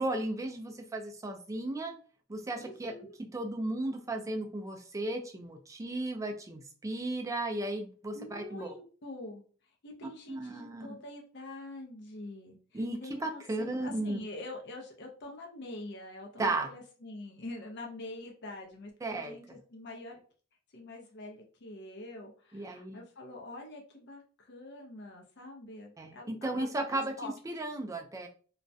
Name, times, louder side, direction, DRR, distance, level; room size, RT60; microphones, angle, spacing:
voice 1, 0.0-1.9 2.3-2.9 3.3-8.7 10.3-10.9 12.7-14.2 16.4-16.7 19.0-19.6 22.5-23.0 26.0-28.3, right 2 dB, 15° right, 4 dB, 0.3 m, -35 dB
voice 2, 2.6-3.2 8.1-20.2 20.7-27.3, left 2 dB, 55° left, 1 dB, 0.5 m, -45 dB
2.3 x 2.1 x 2.6 m, 0.41 s
head